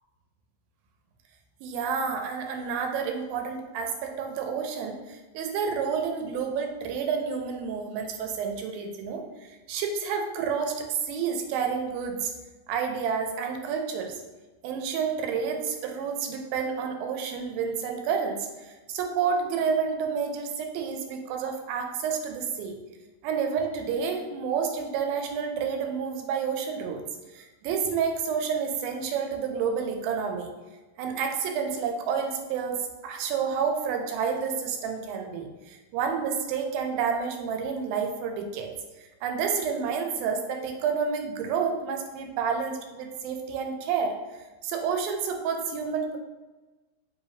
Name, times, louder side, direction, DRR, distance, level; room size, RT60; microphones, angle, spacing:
voice 1, 1.6-12.3 12.7-14.2 14.6-22.8 23.2-27.0 27.3-30.5 31.0-38.7 39.2-46.2, right 6 dB, 90° right, 4 dB, 2.4 m, -29 dB
5.2 x 2.7 x 3.1 m, 1.2 s
omnidirectional pair, 4.0 m